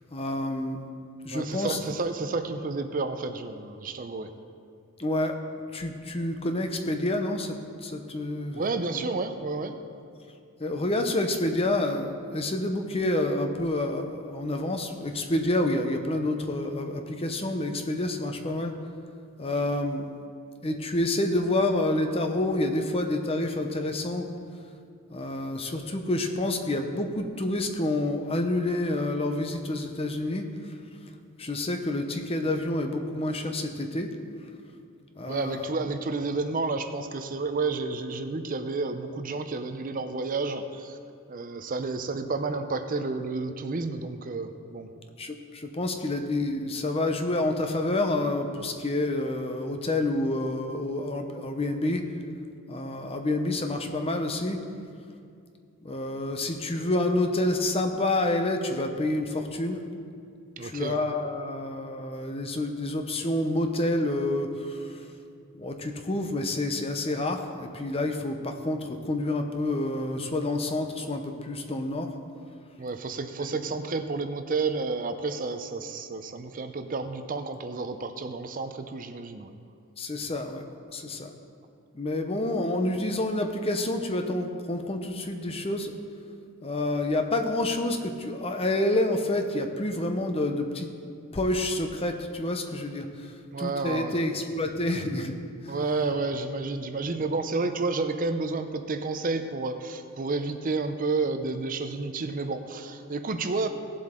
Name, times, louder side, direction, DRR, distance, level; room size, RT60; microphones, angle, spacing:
voice 1, 0.1-0.8 1.2-1.8 5.0-5.4 5.7-9.1 10.6-18.7 19.4-20.1 20.6-24.3 25.1-30.7 31.4-34.1 35.2-35.7 45.2-52.1 52.7-54.6 55.8-59.8 60.6-65.1 65.6-72.1 73.5-73.6 80.0-80.6 80.9-81.3 81.9-85.9 86.6-90.9 91.3-95.3 95.6-95.7, left 1 dB, 25° left, 5 dB, 0.7 m, -28 dB
voice 2, 1.3-4.3 8.6-9.7 35.3-41.0 41.3-44.9 60.6-61.0 72.8-79.5 93.5-94.2 95.7-103.7, right 3 dB, 40° right, 8 dB, 0.5 m, -30 dB
17.0 x 7.7 x 3.7 m, 2.4 s
head